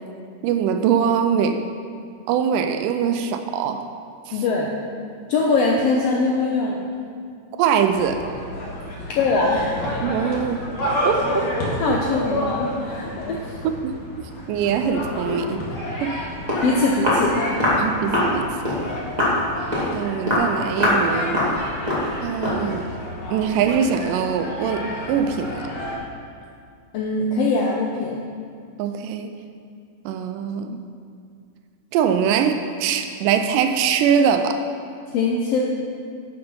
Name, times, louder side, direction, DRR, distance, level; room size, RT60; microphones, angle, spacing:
voice 1, 0.4-1.7 2.3-3.9 4.3-4.4 7.6-8.2 10.0-10.7 11.1-11.5 11.9-12.0 13.8-14.0 14.5-15.6 16.0-16.2 17.7-18.8 19.9-21.5 22.2-23.0 23.3-25.6 28.8-29.4 30.1-30.8 31.9-34.6, right 7 dB, 90° right, 7 dB, 2.2 m, -22 dB
voice 2, 4.3-4.7 5.3-6.8 9.1-9.9 11.8-13.6 16.6-17.5 26.9-28.2 35.1-35.7, left 3 dB, 80° left, -1 dB, 1.4 m, -22 dB
sound 1, 7.9-26.0, left 1 dB, 45° left, 2.3 m, -30 dB
Walk footsteps, 16.2-16.3 16.5-16.7 17.0-17.3 17.6-17.8 18.1-18.3 18.6-18.8 19.2-19.4 19.7-19.9 20.3-20.5 20.8-21.0 21.3-21.6 21.9-22.1 22.4-22.6, left 1 dB, 15° right, 1.7 m, -21 dB
11.0 x 6.9 x 5.4 m, 2.2 s
omnidirectional pair, 3.8 m